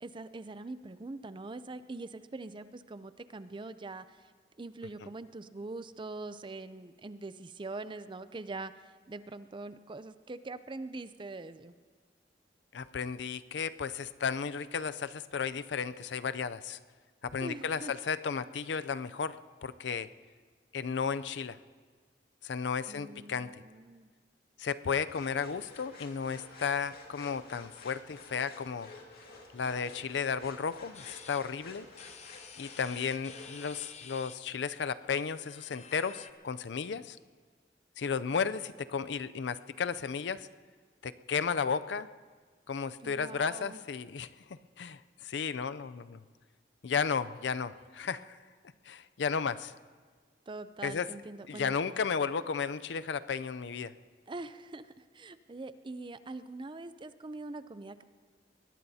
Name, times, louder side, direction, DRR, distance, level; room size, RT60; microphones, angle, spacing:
voice 1, 0.0-4.0 4.6-8.7 9.1-11.7 17.4-17.9 22.9-24.1 43.0-43.8 50.5-51.7 54.3-58.0, right 2 dB, 30° right, 13 dB, 0.5 m, -43 dB
voice 2, 12.7-16.8 17.2-19.4 19.6-20.1 20.7-21.6 22.4-23.5 24.6-28.9 29.5-31.9 32.6-37.2 38.0-40.5 41.0-42.1 42.7-46.2 46.8-48.4 48.9-49.7 50.8-51.1 51.5-53.9, left 6 dB, 80° left, 13 dB, 0.5 m, -34 dB
sound 1, 25.1-33.9, left 3 dB, 60° left, 2.2 m, -52 dB
sound 2, 30.9-36.3, left 7 dB, 40° left, 0.7 m, -51 dB
22.0 x 19.0 x 2.8 m, 1.5 s
head